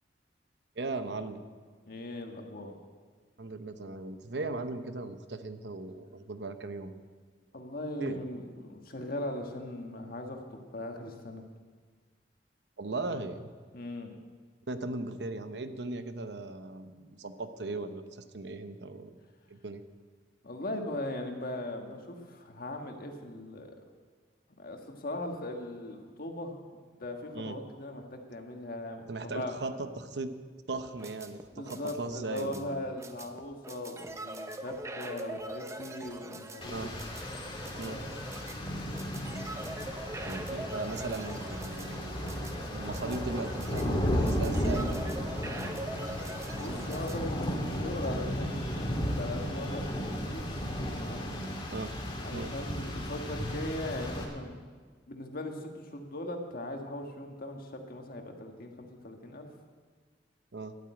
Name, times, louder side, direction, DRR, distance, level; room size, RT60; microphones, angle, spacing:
voice 1, 0.8-1.4 3.4-6.9 8.0-8.2 12.8-13.5 14.7-19.2 19.5-19.8 27.3-27.6 29.1-30.3 30.7-32.9 36.7-36.9 37.8-38.0 40.2-45.3 51.7-51.9 52.3-52.5 60.5-60.7, right 3 dB, 75° right, 9 dB, 0.9 m, -38 dB
voice 2, 1.8-2.7 7.5-11.4 13.7-14.2 20.4-23.7 24.6-26.6 27.0-29.5 31.5-36.9 37.7-38.1 46.5-49.8 50.2-50.4 50.9-51.4 52.2-54.6 55.1-59.5, left 1 dB, 55° left, 3 dB, 1.6 m, -39 dB
sound 1, 30.7-47.2, right 1 dB, 15° right, 0.8 m, -43 dB
Rain, 36.6-54.2, equal, 30° left, 2.2 m, -34 dB
12.0 x 8.8 x 8.8 m, 1.5 s
head